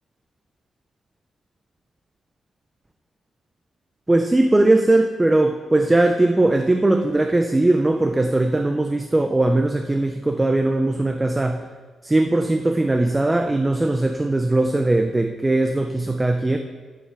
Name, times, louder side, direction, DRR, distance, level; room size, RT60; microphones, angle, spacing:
voice 1, 4.1-11.6 12.0-16.6, right 2 dB, 10° right, 5 dB, 0.5 m, -19 dB
13.5 x 7.3 x 4.5 m, 1.4 s
wide cardioid pair, 160°, 0 cm